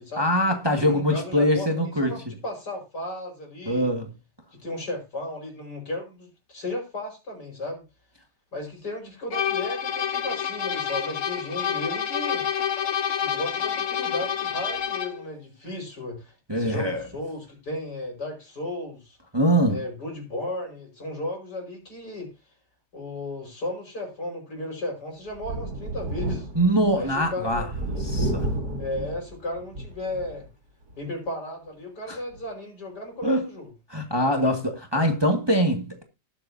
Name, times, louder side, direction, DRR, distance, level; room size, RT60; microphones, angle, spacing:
voice 1, 0.2-2.1 3.6-4.1 16.5-17.0 19.3-19.8 26.5-27.7 28.0-28.5 32.1-32.2 33.2-33.4 33.9-36.0, equal, 15° right, 1.8 m, -23 dB
voice 2, 0.8-1.7 2.0-3.9 4.6-7.8 8.5-12.4 13.2-19.2 19.7-22.3 22.9-26.5 26.9-28.4 28.8-30.5 31.0-33.7, left 1 dB, 65° left, 6.0 m, -34 dB
sound 1, 9.3-15.2, left 8 dB, 50° left, 1.3 m, -28 dB
Thunder, 25.3-30.5 30.9-31.0 32.3-32.4, right 1 dB, 60° right, 2.9 m, -31 dB
20.0 x 7.5 x 2.8 m
omnidirectional pair, 1.9 m